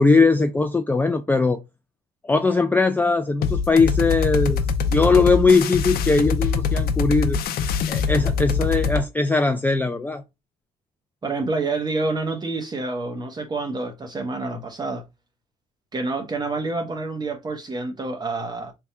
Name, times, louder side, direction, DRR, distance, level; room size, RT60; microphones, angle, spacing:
voice 1, 0.0-1.6 2.2-4.7 4.9-7.4 7.9-10.2, left 3 dB, 10° left, 0.4 m, -20 dB
sound 1, 3.4-9.0, left 5 dB, 65° left, 0.6 m, -23 dB
voice 2, 11.2-15.1 15.9-18.7, right 3 dB, 25° right, 1.0 m, -28 dB
3.5 x 2.3 x 4.2 m
cardioid pair, 110°, 17 cm